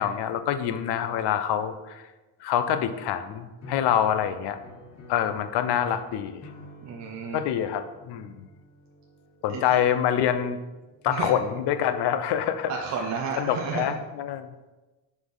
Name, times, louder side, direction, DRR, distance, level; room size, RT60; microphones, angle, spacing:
voice 1, 0.0-2.0 2.4-4.6 5.1-6.5 7.3-8.4 9.4-10.6 11.0-12.7 13.4-14.5, left 9 dB, 55° left, 10 dB, 0.6 m, -26 dB
sound 1, 3.6-11.9, left 1 dB, 30° left, 1.0 m, -49 dB
voice 2, 6.8-7.4 9.5-9.8 11.1-11.3 12.7-14.0, right 5 dB, 35° right, 1 dB, 0.6 m, -32 dB
5.0 x 4.2 x 5.3 m, 1.1 s
cardioid pair, 140°, 50 cm